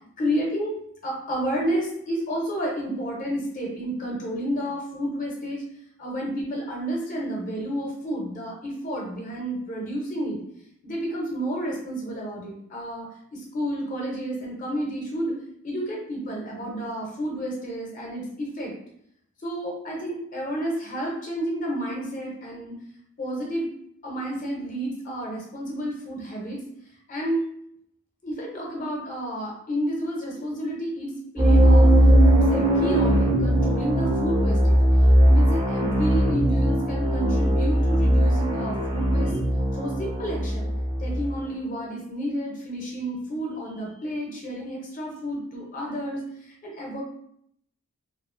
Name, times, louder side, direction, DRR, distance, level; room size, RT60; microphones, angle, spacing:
voice 1, 0.2-0.7 1.0-5.6 6.0-10.4 10.8-15.3 15.6-18.7 19.4-22.7 23.2-23.7 24.0-26.6 27.1-27.4 28.2-34.8 35.2-39.4 39.7-40.7 41.0-47.0, equal, 35° left, -2 dB, 0.5 m, -30 dB
sound 1, 31.4-41.3, equal, 20° right, 0.4 m, -19 dB
2.4 x 2.4 x 2.4 m, 0.71 s
head